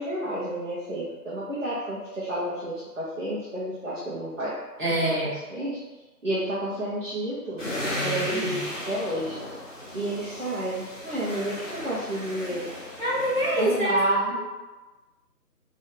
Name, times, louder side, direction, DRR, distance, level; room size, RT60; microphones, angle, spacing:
voice 1, 0.0-4.6 4.9-5.8 6.2-7.6 8.0-9.4 9.9-12.7 13.6-14.4, right 1 dB, 50° right, -10 dB, 0.8 m, -30 dB
voice 2, 4.8-5.3 7.9-8.6 13.0-14.0, right 1 dB, 30° right, -12 dB, 1.2 m, -26 dB
sound 1, 7.6-13.8, left 1 dB, 50° left, 1.1 m, -35 dB
2.7 x 2.6 x 3.6 m, 1.2 s
figure-of-eight pair, 175°, 49 cm